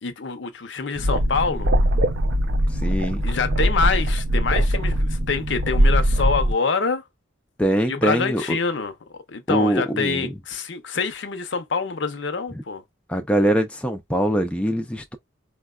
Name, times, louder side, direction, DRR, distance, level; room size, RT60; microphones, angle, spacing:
voice 1, 0.0-1.7 3.2-7.0 7.9-12.8, left 5 dB, 60° left, 0.6 m, -26 dB
sound 1, 1.0-6.5, equal, 65° right, 0.6 m, -21 dB
voice 2, 2.7-3.2 7.6-8.6 9.5-10.3 13.1-15.2, equal, 5° left, 0.4 m, -23 dB
4.4 x 2.1 x 2.3 m
head